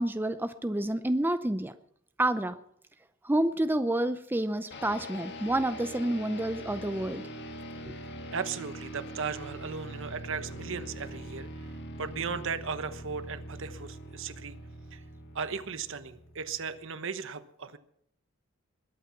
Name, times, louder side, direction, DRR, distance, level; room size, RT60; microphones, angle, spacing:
voice 1, 0.0-1.7 2.2-2.6 3.2-7.2 7.9-8.0, right 1 dB, 10° right, 10 dB, 0.6 m, -29 dB
sound 1, 4.7-16.9, equal, 55° left, 1.7 m, -43 dB
voice 2, 8.3-11.7 12.0-14.6 14.9-15.0 15.3-17.8, right 5 dB, 65° right, 11 dB, 1.1 m, -36 dB
21.0 x 8.9 x 5.8 m, 0.72 s
head